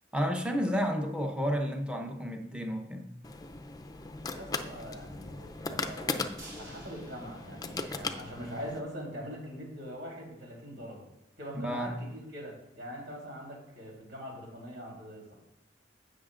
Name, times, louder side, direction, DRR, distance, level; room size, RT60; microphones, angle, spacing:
voice 1, 0.1-3.1 11.5-11.9, equal, 5° right, 3 dB, 0.8 m, -31 dB
sound 1, 3.2-8.8, left 3 dB, 20° left, 0.5 m, -38 dB
voice 2, 4.2-11.1 11.4-15.3, equal, 70° right, -2 dB, 3.6 m, -43 dB
sound 2, 6.4-8.5 8.9-9.0 9.3-9.4, right 1 dB, 20° right, 3.7 m, -52 dB
16.5 x 6.4 x 2.5 m, 0.88 s
head